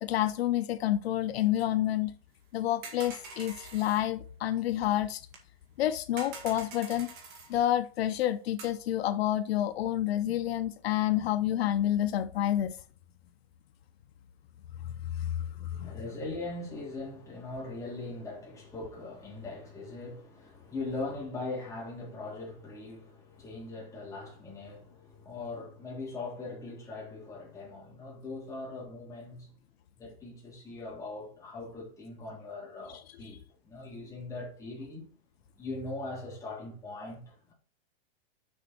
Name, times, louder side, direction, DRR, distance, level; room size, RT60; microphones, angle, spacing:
voice 1, 0.0-2.1 2.5-5.2 5.8-7.1 7.5-12.8 15.0-15.9, left 12 dB, 80° left, 0.7 m, -29 dB
sound 1, 2.8-4.0 5.3-5.4 6.2-7.5 8.6-8.7, right 4 dB, 30° right, 2.0 m, -45 dB
voice 2, 15.6-29.6 30.0-35.1 35.6-37.5, left 2 dB, 10° left, 3.0 m, -40 dB
6.9 x 5.4 x 4.3 m
supercardioid pair, 170°, 31 cm